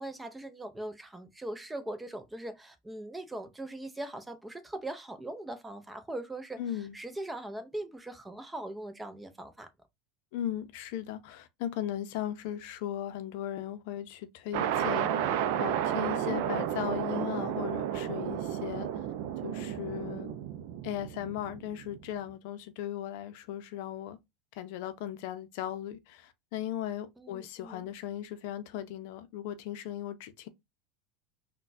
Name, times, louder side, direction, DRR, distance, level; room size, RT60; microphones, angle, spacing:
voice 1, 0.0-6.6 6.9-9.7 27.2-27.9, right 1 dB, 10° right, 0.5 m, -40 dB
voice 2, 6.6-6.9 10.3-15.1 15.6-19.1 19.4-20.3 20.8-24.2 24.5-30.5, left 11 dB, 70° left, 0.5 m, -37 dB
sound 1, 14.5-22.1, right 9 dB, 65° right, 0.4 m, -32 dB
3.9 x 2.2 x 2.6 m
supercardioid pair, 105°, 0 cm